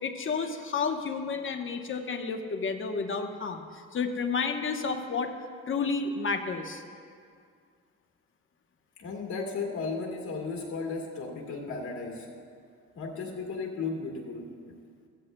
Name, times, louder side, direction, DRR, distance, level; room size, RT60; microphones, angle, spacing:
voice 1, 0.0-3.6 3.9-5.3 5.7-6.8, left 5 dB, 40° left, 5 dB, 1.0 m, -31 dB
voice 2, 9.0-12.3 12.9-14.8, left 4 dB, 75° left, 0 dB, 2.3 m, -35 dB
15.0 x 14.0 x 2.2 m, 2.2 s
cardioid pair, 90°, 30 cm